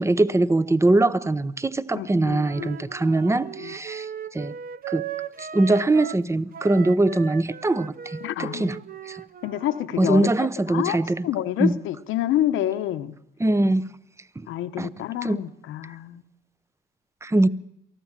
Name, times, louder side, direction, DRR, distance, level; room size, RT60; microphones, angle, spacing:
voice 1, 0.0-4.5 4.9-5.0 5.4-8.8 9.1-9.2 10.0-11.3 11.6-11.8 13.4-13.9 14.4-14.5 14.8-14.9 15.2-15.4 17.2-17.5, right 2 dB, 15° right, 0.7 m, -22 dB
voice 2, 1.9-2.8 3.6-3.7 8.2-8.7 9.4-13.2 14.5-16.2, left 12 dB, 85° left, 1.0 m, -28 dB
Wind instrument woodwind instrument, 2.3-6.3 6.5-10.5, right 8 dB, 45° right, 0.8 m, -38 dB
24.0 x 15.0 x 7.5 m
cardioid pair, 90°, 20 cm